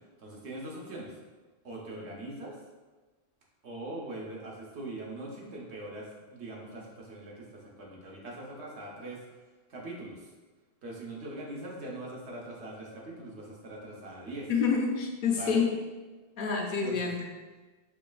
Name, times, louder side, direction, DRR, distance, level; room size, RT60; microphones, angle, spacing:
voice 1, 0.2-1.1 1.6-2.6 3.6-9.2 9.7-10.3 10.8-14.5 15.3-15.6 16.8-17.1, right 1 dB, 90° right, -2 dB, 1.1 m, -42 dB
voice 2, 14.5-15.8 16.4-17.2, left 5 dB, 60° left, 1 dB, 0.7 m, -27 dB
4.8 x 3.0 x 2.3 m, 1.3 s
omnidirectional pair, 1.1 m